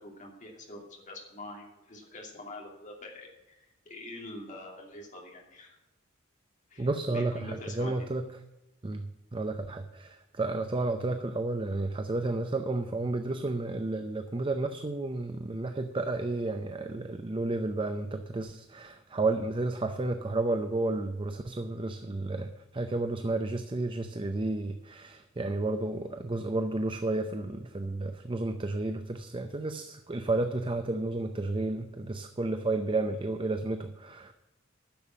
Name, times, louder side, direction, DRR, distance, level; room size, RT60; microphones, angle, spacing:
voice 1, 0.0-5.8 6.7-8.1, left 1 dB, 40° left, 0 dB, 2.6 m, -45 dB
voice 2, 6.8-8.3 8.8-34.3, right 2 dB, 25° right, 8 dB, 0.5 m, -32 dB
10.5 x 7.0 x 7.3 m, 1.0 s
head